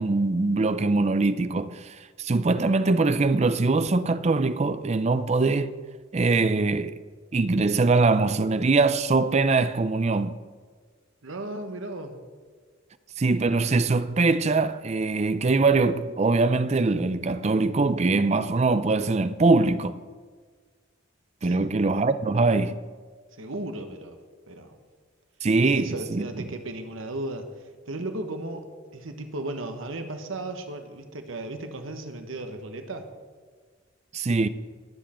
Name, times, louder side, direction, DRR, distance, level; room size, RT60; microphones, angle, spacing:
voice 1, 0.0-5.7 6.1-7.0 7.3-10.4 13.2-20.0 21.4-22.8 25.4-26.5 34.1-34.5, right 3 dB, 35° right, 0.5 m, -23 dB
voice 2, 11.2-12.2 21.4-21.7 23.4-24.2 24.5-24.8 25.6-27.5 27.9-33.1, right 2 dB, 80° right, 1.3 m, -35 dB
21.5 x 7.6 x 4.4 m
head